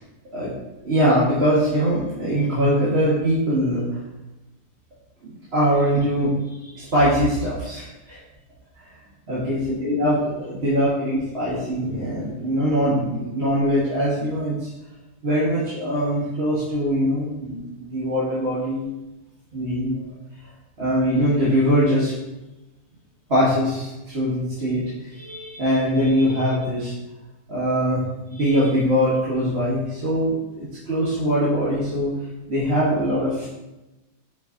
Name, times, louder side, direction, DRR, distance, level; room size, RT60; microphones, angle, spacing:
voice 1, 0.8-3.8 5.2-8.2 8.8-8.9 9.3-14.7 15.2-18.9 19.5-20.0 20.8-22.1 23.3-26.9 27.5-28.0 28.3-32.1 32.5-33.5, equal, 40° right, -9 dB, 1.6 m, -22 dB
7.6 x 5.2 x 2.7 m, 1.0 s
omnidirectional pair, 1.8 m